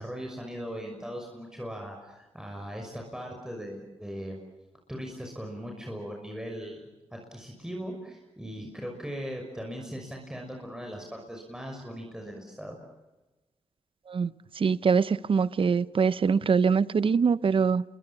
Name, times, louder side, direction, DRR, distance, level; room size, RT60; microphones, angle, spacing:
voice 1, 0.0-4.4 4.9-6.8 7.1-12.8, equal, 5° right, 6.1 m, -39 dB
voice 2, 14.6-17.8, right 5 dB, 55° right, 0.8 m, -23 dB
28.5 x 23.5 x 7.1 m
cardioid pair, 65°, 11 cm